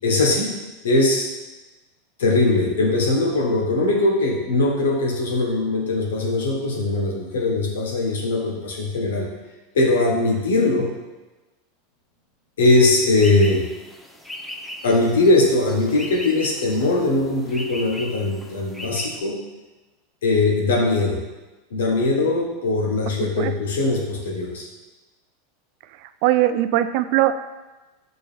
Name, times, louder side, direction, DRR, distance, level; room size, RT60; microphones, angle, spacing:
voice 1, 0.0-0.5 0.8-1.3 2.2-9.3 9.7-10.9 12.6-13.6 14.8-19.4 20.2-21.2 21.7-24.7, left 2 dB, 85° left, 0 dB, 1.3 m, -20 dB
sound 1, 13.2-19.2, left 1 dB, 5° left, 0.7 m, -38 dB
voice 2, 26.0-27.5, right 13 dB, 60° right, 12 dB, 0.4 m, -20 dB
6.8 x 4.2 x 3.5 m, 1.1 s
hypercardioid pair, 110°, 0 cm